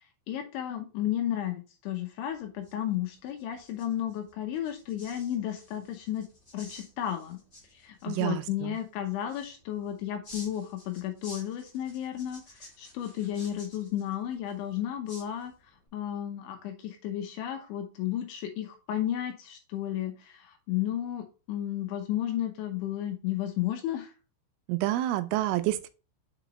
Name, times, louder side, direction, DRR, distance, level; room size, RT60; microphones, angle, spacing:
voice 1, 0.3-6.3 6.5-7.4 7.7-15.5 15.9-24.1, left 11 dB, 80° left, 2.8 m, -33 dB
sound 1, 2.3-15.9, left 1 dB, 25° left, 2.2 m, -53 dB
voice 2, 8.1-8.8 24.7-25.9, right 15 dB, 85° right, 3.0 m, -28 dB
6.7 x 5.2 x 3.0 m
omnidirectional pair, 6.0 m